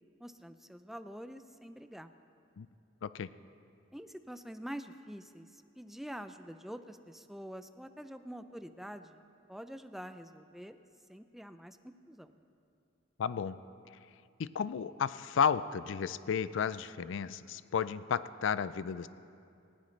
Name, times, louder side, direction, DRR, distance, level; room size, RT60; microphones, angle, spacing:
voice 1, 0.2-2.1 3.9-9.2 9.5-10.8 11.1-12.4, equal, ahead, 10 dB, 0.4 m, -46 dB
voice 2, 13.2-13.6 14.4-19.1, left 7 dB, 70° left, 16 dB, 0.4 m, -33 dB
19.5 x 15.5 x 3.2 m, 2.5 s
head